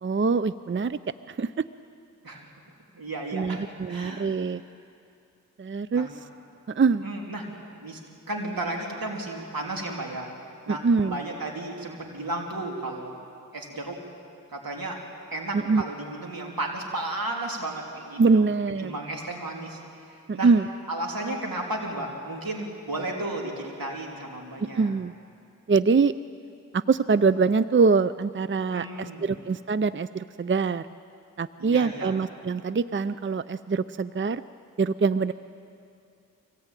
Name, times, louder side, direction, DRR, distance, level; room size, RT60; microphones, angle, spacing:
voice 1, 0.0-1.0 1.3-1.7 3.3-4.6 5.6-6.1 6.7-7.0 10.7-11.2 15.5-15.8 18.2-19.0 20.3-20.7 24.8-25.1 25.7-26.1 26.7-30.9 31.4-34.4 34.8-35.3, right 4 dB, 35° right, 14 dB, 0.5 m, -24 dB
voice 2, 2.9-3.6 3.9-4.2 5.9-6.1 7.0-7.5 7.7-8.0 8.3-10.3 10.7-13.1 13.5-14.0 14.5-15.0 15.3-18.4 18.8-19.8 20.0-20.5 20.9-24.9 28.7-29.3 31.6-32.1, right 2 dB, 85° right, 0 dB, 3.4 m, -33 dB
24.0 x 18.0 x 9.1 m, 2.5 s
cardioid pair, 45°, 34 cm